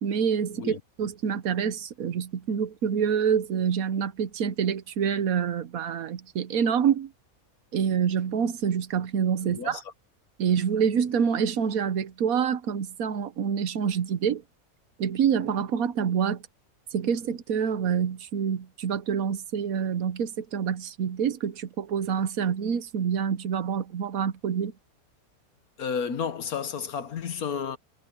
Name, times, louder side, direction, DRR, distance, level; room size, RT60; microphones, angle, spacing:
voice 1, 0.0-7.1 7.7-9.8 10.4-14.4 15.0-16.4 16.9-24.7, right 7 dB, 80° right, 1.4 m, -27 dB
voice 2, 9.4-9.8 25.8-27.8, left 7 dB, 85° left, 1.7 m, -32 dB
omnidirectional pair, 1.5 m